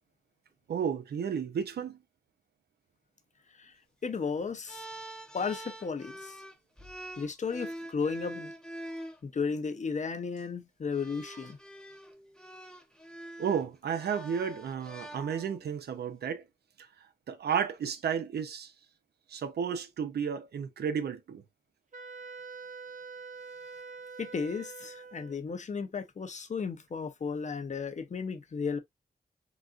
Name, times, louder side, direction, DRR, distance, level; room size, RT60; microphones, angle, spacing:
voice 1, 0.7-2.0 13.4-16.5 16.8-16.9 17.3-18.7 19.3-21.4, right 7 dB, 85° right, 0.5 m, -32 dB
voice 2, 4.0-4.9 5.3-6.3 7.2-8.5 9.2-11.6 24.2-28.8, left 5 dB, 50° left, 0.6 m, -34 dB
sound 1, 4.7-9.2 10.2-10.4 10.9-15.7, right 1 dB, 5° left, 0.6 m, -45 dB
Wind instrument woodwind instrument, 21.9-25.4, right 4 dB, 55° right, 0.8 m, -45 dB
3.9 x 2.4 x 2.3 m
cardioid pair, 70°, 16 cm